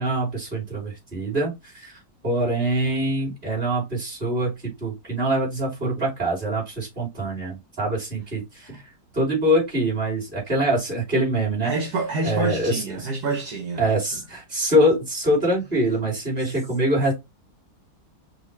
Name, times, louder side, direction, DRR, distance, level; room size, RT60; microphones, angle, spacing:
voice 1, 0.0-2.0 2.2-8.8 9.1-11.7 12.2-13.1 13.8-17.1, right 1 dB, 30° right, 3.1 m, -24 dB
voice 2, 11.6-13.8, right 3 dB, 65° right, 1.4 m, -27 dB
5.4 x 2.6 x 3.2 m
omnidirectional pair, 1.8 m